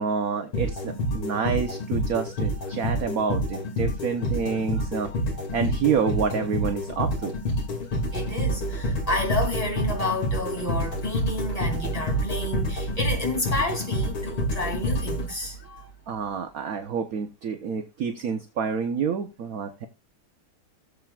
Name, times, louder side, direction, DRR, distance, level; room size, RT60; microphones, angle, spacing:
voice 1, 0.0-5.1 5.5-7.3 16.1-19.9, right 6 dB, 55° right, 1.0 m, -28 dB
sound 1, 0.5-15.8, equal, 65° left, 3.2 m, -28 dB
voice 2, 8.1-15.8, left 1 dB, 15° left, 2.9 m, -30 dB
17.5 x 7.4 x 2.4 m
omnidirectional pair, 2.4 m